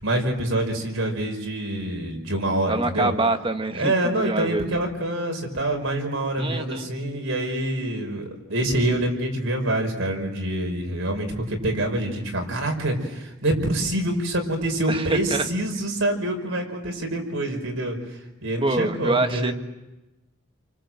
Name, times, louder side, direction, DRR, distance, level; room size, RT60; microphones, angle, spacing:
voice 1, 0.0-3.1 3.7-19.5, right 1 dB, 75° right, 3 dB, 5.5 m, -26 dB
voice 2, 2.7-4.8 6.4-6.9 14.9-15.5 18.6-19.5, right 2 dB, 25° right, 7 dB, 1.5 m, -25 dB
30.0 x 25.0 x 7.8 m, 1.0 s
head